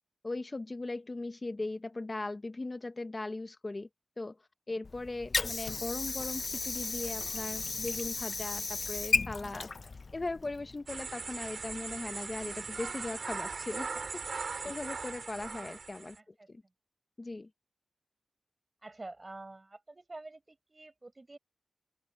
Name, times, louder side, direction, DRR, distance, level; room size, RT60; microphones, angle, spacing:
voice 1, 0.2-3.9 4.2-4.4 4.7-9.7 10.1-14.2 14.6-16.2 16.5-16.6 17.2-17.5, left 2 dB, 35° left, 0.9 m, -39 dB
Water / Sink (filling or washing), 4.8-10.8, left 3 dB, 55° left, 0.4 m, -35 dB
sound 1, 10.9-16.2, right 4 dB, 75° right, 3.2 m, -39 dB
voice 2, 16.1-16.5 18.8-21.4, right 2 dB, 30° right, 4.7 m, -48 dB
open air
wide cardioid pair, 95°, 0 cm